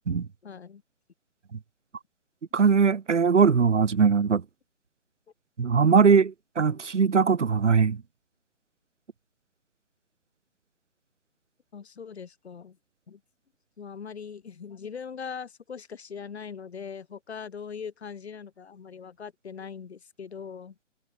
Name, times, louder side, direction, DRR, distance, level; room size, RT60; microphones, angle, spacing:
voice 1, 0.4-0.8 5.6-5.7 6.7-6.8 11.7-12.8 13.1-13.2 13.8-20.8, left 6 dB, 60° left, 4.3 m, -41 dB
voice 2, 2.5-4.4 5.6-8.0, right 6 dB, 70° right, 1.7 m, -21 dB
figure-of-eight pair, 145°, 37 cm